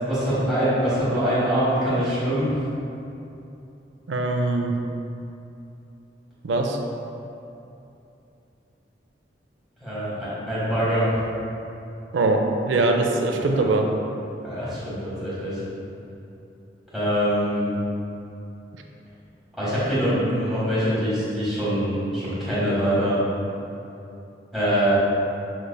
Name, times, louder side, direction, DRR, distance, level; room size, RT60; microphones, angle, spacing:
voice 1, 0.1-2.5 9.8-11.2 13.3-13.7 14.4-15.6 16.9-17.7 19.5-23.2 24.5-25.0, equal, ahead, -12 dB, 1.4 m, -24 dB
voice 2, 4.1-4.8 6.4-6.8 12.1-13.9, right 2 dB, 85° right, 3 dB, 0.4 m, -22 dB
5.9 x 3.3 x 2.2 m, 2.8 s
head